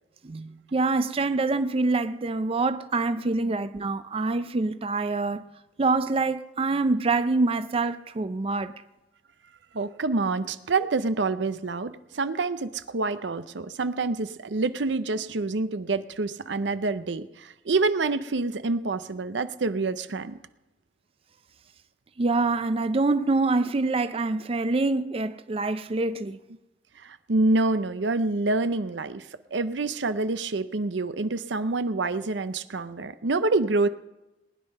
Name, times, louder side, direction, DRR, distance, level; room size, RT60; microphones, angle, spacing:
voice 1, 0.2-5.4 5.8-8.7 22.2-26.4, right 3 dB, 30° right, 0.4 m, -25 dB
voice 2, 9.7-20.4 27.0-33.9, right 3 dB, 80° right, 0.7 m, -27 dB
19.5 x 9.9 x 5.4 m
head